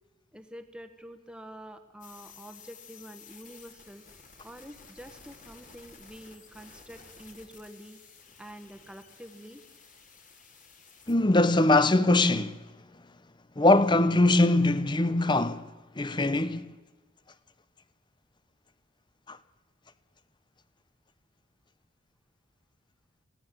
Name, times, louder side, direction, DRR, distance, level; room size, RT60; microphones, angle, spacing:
voice 1, 0.3-4.0 4.4-8.0 8.4-9.6, equal, 5° right, 1.4 m, -47 dB
sound 1, 2.0-11.2, left 5 dB, 40° left, 2.9 m, -53 dB
voice 2, 11.1-12.6 13.6-16.7 19.3-19.4, left 2 dB, 20° left, 0.7 m, -22 dB
26.0 x 17.5 x 7.8 m
head